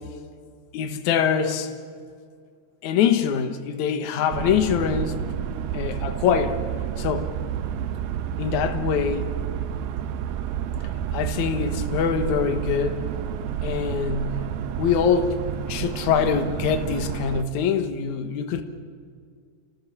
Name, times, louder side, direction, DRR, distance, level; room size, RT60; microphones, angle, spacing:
voice 1, 0.7-1.7 2.8-5.2 5.7-6.6 7.0-7.3 8.4-9.4 11.1-13.0 13.6-14.5 14.8-15.4 15.7-18.6, left 7 dB, 65° left, 2.0 m, -24 dB
sound 1, 4.3-17.4, right 9 dB, 75° right, 2.4 m, -30 dB
29.0 x 18.5 x 7.2 m
omnidirectional pair, 4.8 m